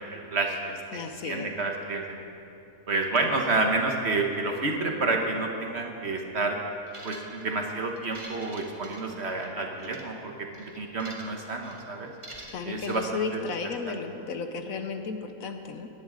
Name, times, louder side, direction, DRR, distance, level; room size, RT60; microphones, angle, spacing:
voice 1, 0.1-2.2 2.9-6.6 7.0-10.5 10.8-12.1 12.7-13.0 13.3-13.4 13.9-14.0, right 3 dB, 50° right, 2 dB, 1.2 m, -29 dB
voice 2, 0.9-1.6 12.5-15.9, left 4 dB, 65° left, 7 dB, 1.1 m, -34 dB
sound 1, 6.9-7.5 8.0-9.5 9.8-10.0 10.5-11.4 11.6-11.8 12.2-13.0, right 1 dB, 20° right, 1.0 m, -46 dB
18.0 x 10.5 x 3.8 m, 2.8 s
omnidirectional pair, 1.7 m